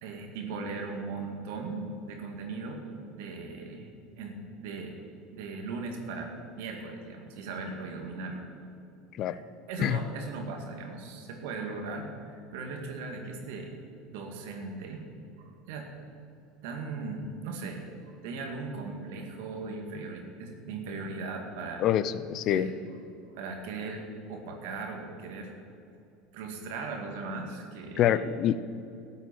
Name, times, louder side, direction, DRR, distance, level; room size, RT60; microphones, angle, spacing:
voice 1, 0.0-5.0 5.3-8.5 9.3-9.4 9.7-13.7 14.1-15.1 15.4-15.9 16.6-21.9 22.5-22.7 23.2-24.0 24.3-25.5 26.3-28.2, right 3 dB, 70° right, 3 dB, 2.1 m, -38 dB
voice 2, 21.8-22.7 28.0-28.6, left 10 dB, 50° left, 15 dB, 0.6 m, -26 dB
13.5 x 7.3 x 8.8 m, 2.6 s
hypercardioid pair, 80°, 0 cm